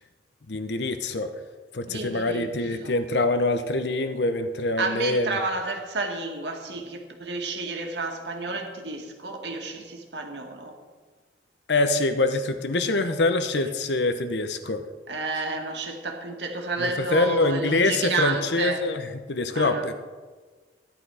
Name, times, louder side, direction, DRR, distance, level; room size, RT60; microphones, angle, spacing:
voice 1, 0.5-1.3 1.7-5.4 11.7-14.8 16.8-19.0 19.3-20.0, left 2 dB, 75° left, 0.9 m, -25 dB
voice 2, 1.9-3.0 4.8-10.7 15.1-18.9 19.5-19.9, right 3 dB, 80° right, 2.0 m, -31 dB
14.5 x 10.5 x 4.9 m
head